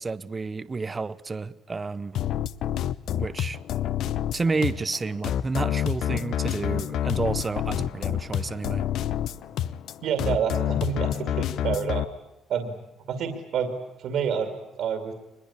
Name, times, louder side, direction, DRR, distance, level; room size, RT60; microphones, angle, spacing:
voice 1, 0.0-2.2 3.2-3.6 4.3-8.9, right 4 dB, 20° right, 0.8 m, -30 dB
sound 1, 2.1-12.0, left 11 dB, 65° left, 0.8 m, -28 dB
voice 2, 10.0-12.0 12.5-12.8 13.1-13.7 14.0-15.1, right 7 dB, 65° right, 2.6 m, -28 dB
24.0 x 21.0 x 8.6 m
cardioid pair, 125°, 0 cm